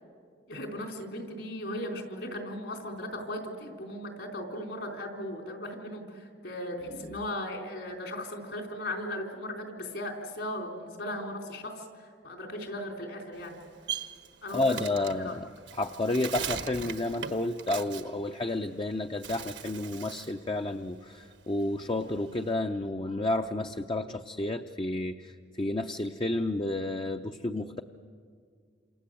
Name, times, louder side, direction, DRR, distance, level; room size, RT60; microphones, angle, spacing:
voice 1, 0.5-13.6 14.4-14.8 15.2-15.3, left 1 dB, 70° left, 3 dB, 4.3 m, -37 dB
voice 2, 6.9-7.2 14.5-15.5 15.7-27.8, left 2 dB, 30° left, 6 dB, 0.6 m, -31 dB
Bird, 13.3-18.8 19.1-20.4 20.8-22.5, right 8 dB, 75° right, 1.3 m, -40 dB
28.0 x 27.5 x 7.7 m, 2.1 s
head